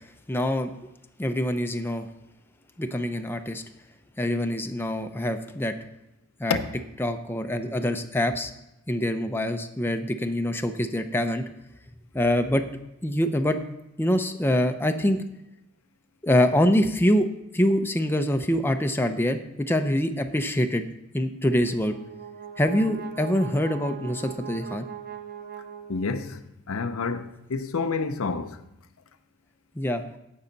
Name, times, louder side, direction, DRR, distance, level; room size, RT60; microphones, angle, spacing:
voice 1, 0.3-0.7 1.2-2.1 2.8-3.6 4.2-5.7 6.4-6.6 7.0-8.5 8.9-11.4 12.1-12.6 13.0-13.6 14.0-15.2 16.2-17.3 17.5-20.8 21.1-22.0 22.6-24.9 29.8-30.0, left 1 dB, 10° left, 0.6 m, -25 dB
Brass instrument, 21.4-26.4, right 9 dB, 45° right, 0.7 m, -41 dB
voice 2, 25.9-26.4 26.7-28.6, left 4 dB, 85° left, 0.6 m, -28 dB
16.0 x 5.6 x 4.0 m
head